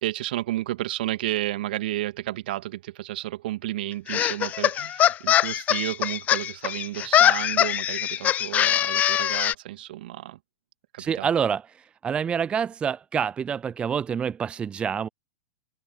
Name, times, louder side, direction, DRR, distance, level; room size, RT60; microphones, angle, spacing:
voice 1, 0.0-10.4 10.9-11.3, right 15 dB, 55° right, 2.2 m, -32 dB
sound 1, 4.1-9.5, left 11 dB, 25° left, 0.5 m, -22 dB
voice 2, 11.0-15.1, right 7 dB, 15° right, 0.6 m, -27 dB
open air
figure-of-eight pair, 100°, 6 cm